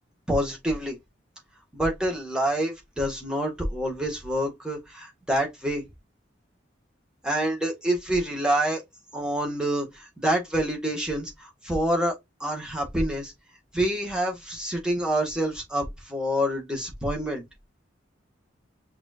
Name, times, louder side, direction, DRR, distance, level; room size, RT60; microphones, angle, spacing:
voice 1, 0.3-1.0 1.7-5.8 7.2-8.8 9.1-12.1 12.4-13.3 13.7-17.4, right 1 dB, 5° right, 1.8 m, -27 dB
5.8 x 2.9 x 2.5 m
head